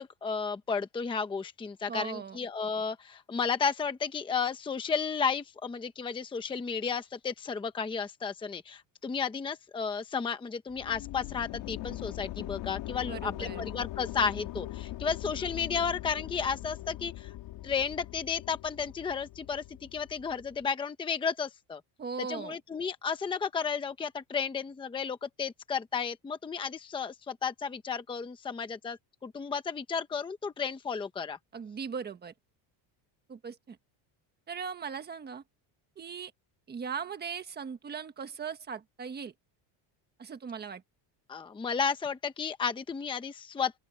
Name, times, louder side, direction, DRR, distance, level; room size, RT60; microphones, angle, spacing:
voice 1, 0.0-17.3 17.6-21.8 22.3-31.4 41.3-43.8, left 6 dB, 10° left, 0.8 m, -33 dB
voice 2, 1.9-2.4 13.1-13.6 22.0-22.6 31.5-32.3 33.3-33.8 34.5-35.4 36.0-36.3 36.7-39.3 40.2-40.8, right 6 dB, 20° right, 1.4 m, -39 dB
sound 1, 10.7-20.6, left 16 dB, 55° left, 3.3 m, -41 dB
open air
cardioid pair, 180°, 50 cm